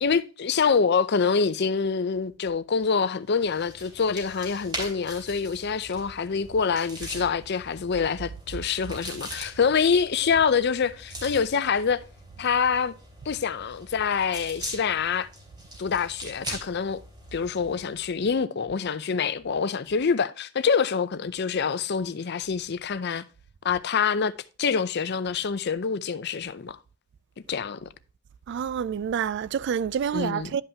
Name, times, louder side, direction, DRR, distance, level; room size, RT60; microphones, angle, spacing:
voice 1, 0.0-12.0 12.4-12.9 13.3-15.3 15.8-17.0 17.3-23.3 23.6-24.3 24.6-26.8 27.5-27.9 30.1-30.5, left 6 dB, 55° left, 0.5 m, -26 dB
sound 1, 3.3-18.0, equal, 25° right, 3.5 m, -42 dB
voice 2, 28.5-30.6, right 7 dB, 60° right, 0.3 m, -28 dB
11.0 x 5.5 x 2.8 m
head